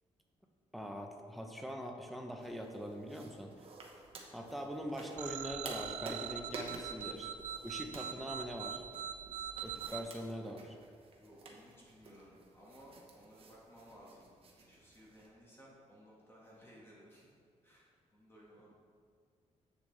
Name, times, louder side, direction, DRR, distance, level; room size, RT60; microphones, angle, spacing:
voice 1, 0.7-3.5 4.3-7.3 7.6-8.8 9.6-10.8, equal, ahead, 3 dB, 0.6 m, -43 dB
sound 1, 2.4-15.3, right 3 dB, 50° right, 1.0 m, -52 dB
sound 2, 5.2-10.0, right 10 dB, 75° right, 0.4 m, -42 dB
voice 2, 11.1-14.3 14.6-17.3 17.6-18.7, equal, 20° left, -6 dB, 1.7 m, -58 dB
7.8 x 7.1 x 3.3 m, 2.1 s
wide cardioid pair, 155°, 13 cm